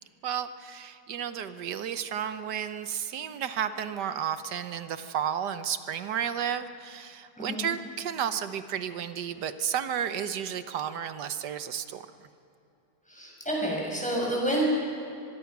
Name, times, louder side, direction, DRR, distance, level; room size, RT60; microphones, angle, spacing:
voice 1, 0.2-12.3, right 9 dB, 80° right, 10 dB, 1.5 m, -32 dB
voice 2, 7.4-7.7 13.1-14.6, right 1 dB, 5° left, -3 dB, 6.6 m, -29 dB
24.0 x 22.0 x 6.0 m, 2.7 s
omnidirectional pair, 1.8 m